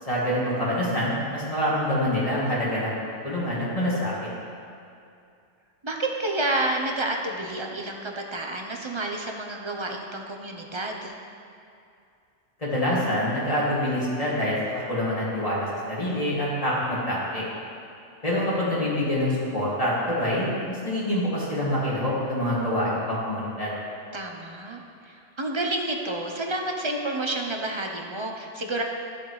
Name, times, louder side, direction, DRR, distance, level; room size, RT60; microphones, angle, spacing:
voice 1, 0.1-2.9 3.2-4.3 12.6-17.5 18.2-23.7, left 1 dB, 30° left, -8 dB, 2.3 m, -26 dB
voice 2, 5.8-11.2 24.1-28.8, right 2 dB, 30° right, 2 dB, 0.6 m, -30 dB
14.0 x 7.1 x 3.2 m, 2.5 s
omnidirectional pair, 1.3 m